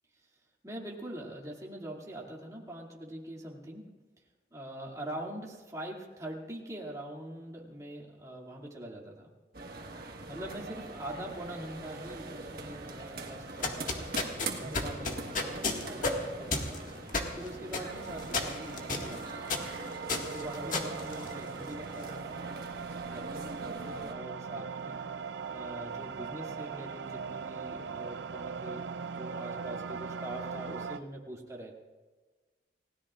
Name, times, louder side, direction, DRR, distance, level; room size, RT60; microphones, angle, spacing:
voice 1, 0.6-3.9 4.5-9.3 10.3-14.1 14.7-16.8 17.4-19.6 20.3-25.0 25.5-28.9 29.1-31.7, right 1 dB, 20° right, -2 dB, 2.4 m, -43 dB
sound 1, 9.5-24.1, right 3 dB, 55° right, 1.5 m, -43 dB
sound 2, 13.4-21.8, left 3 dB, 45° left, 1.8 m, -34 dB
sound 3, 17.9-31.0, right 5 dB, 85° right, 0.6 m, -40 dB
29.5 x 17.5 x 2.5 m, 1.3 s
head